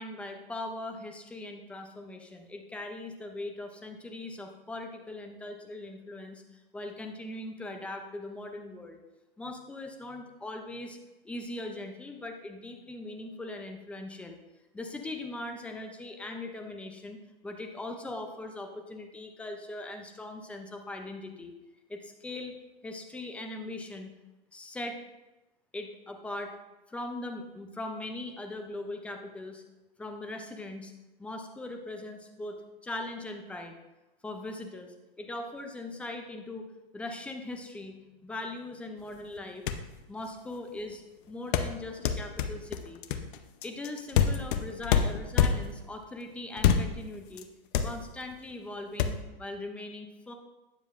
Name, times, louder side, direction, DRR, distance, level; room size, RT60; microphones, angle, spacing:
voice 1, 0.0-9.0 9.4-11.0 11.2-14.4 14.7-21.6 21.9-22.6 22.8-24.1 24.5-25.0 25.7-26.6 26.9-29.6 30.0-30.9 31.2-32.6 32.8-33.8 34.2-36.6 36.9-38.0 38.2-39.6 40.1-41.0 41.3-43.0 43.6-47.5 47.8-50.3, left 2 dB, 5° left, 4 dB, 0.4 m, -40 dB
sound 1, 39.4-39.5 39.7-40.0 41.5-45.9 46.6-47.1 47.4-47.5 47.7-48.3 49.0-49.1, left 8 dB, 55° left, 0.7 m, -26 dB
9.2 x 7.3 x 2.4 m, 1.0 s
hypercardioid pair, 140°, 30 cm